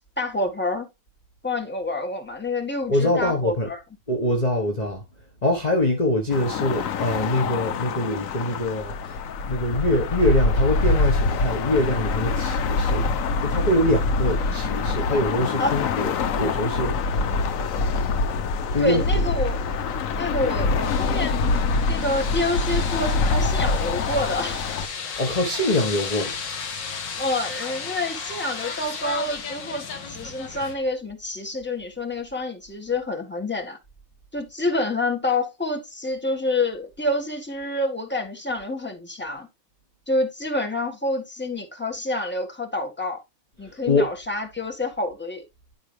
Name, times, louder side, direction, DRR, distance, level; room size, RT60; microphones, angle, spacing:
voice 1, 0.2-0.9 1.4-3.8 15.6-15.8 18.8-19.6 20.1-21.4 21.9-24.7 27.2-33.8 34.3-39.5 40.1-43.2 43.6-45.4, left 2 dB, 5° left, 1.4 m, -27 dB
voice 2, 2.9-3.7 4.1-5.0 5.4-9.2 9.5-13.1 13.4-17.0 18.7-19.0 25.2-26.4 43.7-44.1, left 1 dB, 25° left, 0.9 m, -24 dB
sound 1, 6.3-24.9, left 3 dB, 90° left, 0.7 m, -25 dB
sound 2, 20.8-30.8, left 6 dB, 55° left, 2.0 m, -34 dB
11.0 x 4.8 x 3.3 m
omnidirectional pair, 2.4 m